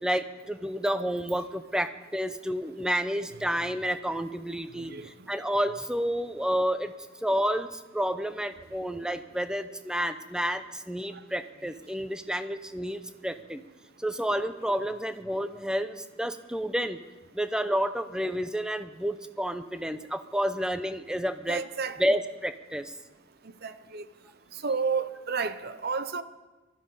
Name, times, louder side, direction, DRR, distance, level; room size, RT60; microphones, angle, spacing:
voice 1, 0.0-6.9 7.2-13.6 14.0-17.0 17.3-21.6 22.0-22.9, equal, 5° right, 0.7 m, -30 dB
voice 2, 21.5-22.2 23.6-24.0 24.6-26.2, right 5 dB, 50° right, 0.8 m, -31 dB
19.5 x 13.0 x 5.6 m
head